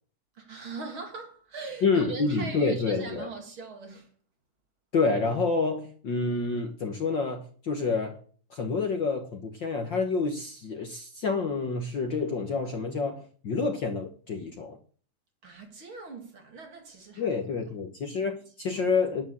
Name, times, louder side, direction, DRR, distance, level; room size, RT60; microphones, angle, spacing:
voice 1, 0.4-4.1 15.4-17.3 18.7-18.8, right 4 dB, 45° right, 2.7 m, -40 dB
voice 2, 1.8-3.3 4.9-8.2 8.5-14.8 17.2-19.3, left 4 dB, 50° left, 1.6 m, -28 dB
10.5 x 8.2 x 7.5 m
omnidirectional pair, 3.4 m